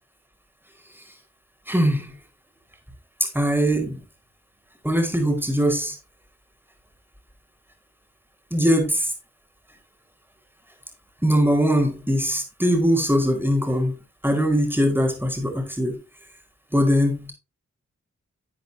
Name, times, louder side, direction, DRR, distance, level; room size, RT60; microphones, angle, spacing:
voice 1, 1.7-2.1 3.3-4.0 4.8-5.9 8.5-9.1 11.2-13.9 14.2-16.0 16.7-17.3, equal, 5° right, 3 dB, 4.5 m, -21 dB
12.5 x 7.9 x 2.7 m, 0.28 s
cardioid pair, 45°, 29 cm